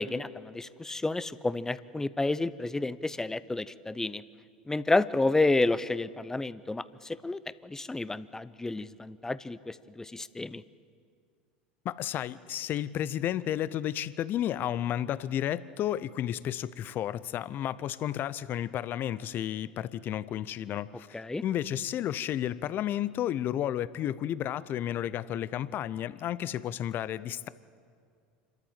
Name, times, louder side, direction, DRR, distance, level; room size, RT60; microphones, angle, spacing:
voice 1, 0.0-4.2 4.7-10.6 21.1-21.4, left 2 dB, 10° left, 16 dB, 0.7 m, -30 dB
voice 2, 11.8-27.5, left 11 dB, 45° left, 17 dB, 0.7 m, -32 dB
27.0 x 13.0 x 7.5 m, 2.2 s
hypercardioid pair, 85°, 5 cm